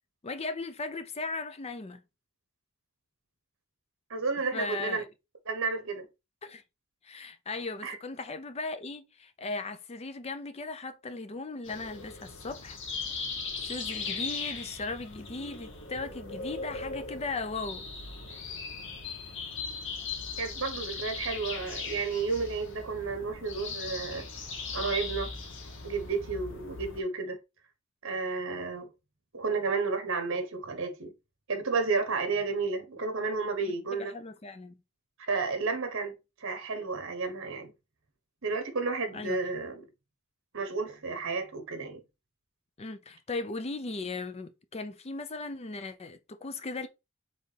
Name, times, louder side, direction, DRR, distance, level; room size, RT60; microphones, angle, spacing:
voice 1, 0.2-2.0 4.5-5.1 6.4-6.6 7.0-12.8 13.6-17.9 33.6-34.8 39.1-39.4 42.8-46.9, left 3 dB, 30° left, 0.5 m, -37 dB
voice 2, 4.1-5.0 5.5-6.1 7.8-8.0 20.4-24.2 24.7-25.3 25.8-27.4 28.0-28.9 29.3-31.1 31.5-34.1 35.2-36.1 36.4-37.7 38.4-39.8 40.5-42.0, right 4 dB, 60° right, 1.1 m, -32 dB
sound 1, 11.7-27.0, left 4 dB, 55° left, 1.0 m, -39 dB
4.4 x 3.6 x 3.3 m
head